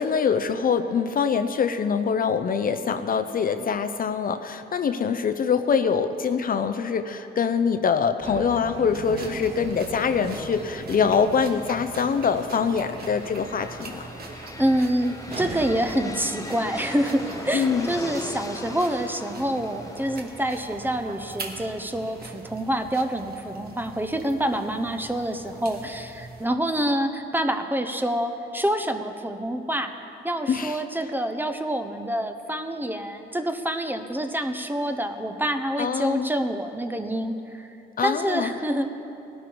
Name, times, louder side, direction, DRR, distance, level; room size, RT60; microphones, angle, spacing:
voice 1, 0.0-14.0 17.5-17.9 30.5-30.8 35.8-36.3 38.0-38.5, left 6 dB, 45° left, 9 dB, 0.7 m, -24 dB
sound 1, 8.2-20.0, right 2 dB, 30° right, 2.2 m, -41 dB
sound 2, 8.9-26.5, right 3 dB, 50° right, 1.7 m, -43 dB
sound 3, 12.9-22.7, left 2 dB, 15° left, 1.0 m, -40 dB
voice 2, 14.6-29.9 30.2-37.7 38.0-39.0, right 1 dB, 10° right, 7 dB, 0.9 m, -27 dB
17.5 x 12.0 x 4.7 m, 2.8 s
cardioid pair, 90°, 20 cm